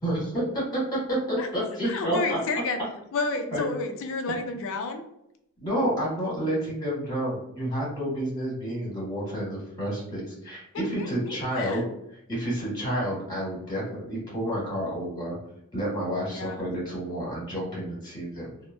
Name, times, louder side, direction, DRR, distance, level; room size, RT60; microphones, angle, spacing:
voice 1, 0.0-2.4 3.5-3.6 5.6-15.4 15.7-18.5, equal, 20° left, -5 dB, 1.2 m, -30 dB
voice 2, 1.9-2.8 3.1-5.1 10.7-11.8 16.3-16.6, left 3 dB, 65° left, 6 dB, 0.4 m, -31 dB
2.9 x 2.0 x 2.2 m, 0.78 s
head